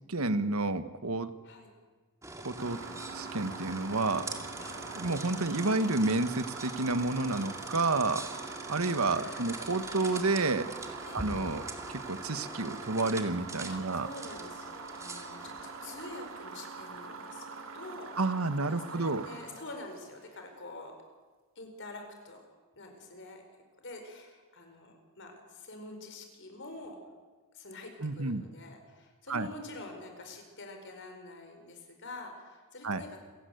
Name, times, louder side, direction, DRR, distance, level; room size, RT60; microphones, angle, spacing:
voice 1, 0.1-1.3 2.4-2.8 3.1-4.3 5.0-8.2 8.7-10.7 11.1-11.6 12.1-14.1 18.2-19.2 28.0-28.4 29.3-29.5 32.8-33.0, right 3 dB, 85° right, 11 dB, 1.5 m, -30 dB
sound 1, 2.2-16.6, right 2 dB, 15° right, 2.2 m, -43 dB
sound 2, 2.6-20.5, right 4 dB, 65° right, 2.2 m, -44 dB
voice 2, 9.1-9.6 11.0-11.2 13.7-18.1 18.7-20.9 21.5-22.4 22.7-23.4 23.8-27.0 27.5-33.2, left 2 dB, 60° left, 4 dB, 5.1 m, -46 dB
27.5 x 17.5 x 8.0 m, 1.4 s
head